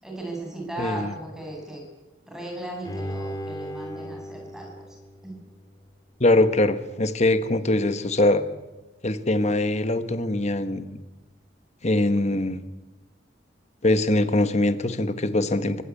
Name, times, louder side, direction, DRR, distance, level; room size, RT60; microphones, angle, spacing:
voice 1, 0.0-1.8 2.3-4.7 5.2-5.4, right 1 dB, 5° right, -1 dB, 7.4 m, -36 dB
voice 2, 0.8-1.1 6.2-8.4 9.0-11.0 11.8-12.6 13.8-15.8, left 2 dB, 40° left, 11 dB, 1.4 m, -22 dB
Bowed string instrument, 2.9-6.0 6.4-6.5, equal, 20° left, 2.5 m, -37 dB
24.5 x 15.5 x 8.5 m, 1.1 s
head